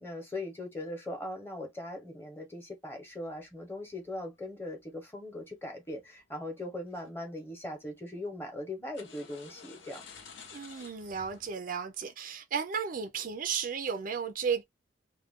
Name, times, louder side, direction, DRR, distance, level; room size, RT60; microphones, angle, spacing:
voice 1, 0.0-10.1, left 1 dB, 10° left, 0.9 m, -40 dB
sound 1, 3.2-4.7 5.9-6.2 6.6-7.1 7.4-7.9 8.9-11.5, left 5 dB, 80° left, 0.7 m, -52 dB
voice 2, 10.5-14.6, right 6 dB, 45° right, 0.4 m, -34 dB
2.4 x 2.2 x 3.5 m
head